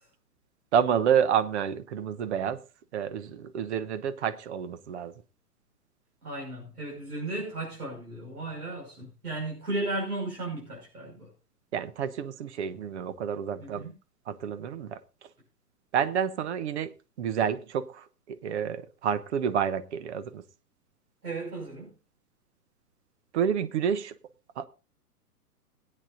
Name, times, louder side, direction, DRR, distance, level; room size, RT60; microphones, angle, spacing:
voice 1, 0.7-2.6 2.9-5.1 11.7-13.9 14.3-15.0 15.9-16.9 17.2-20.4 23.3-24.1 24.6-24.7, right 8 dB, 45° right, 1.0 m, -29 dB
voice 2, 6.2-11.3 13.6-13.9 21.2-21.9, right 2 dB, 75° right, 5.7 m, -35 dB
21.5 x 8.9 x 2.7 m
figure-of-eight pair, 115°, 47 cm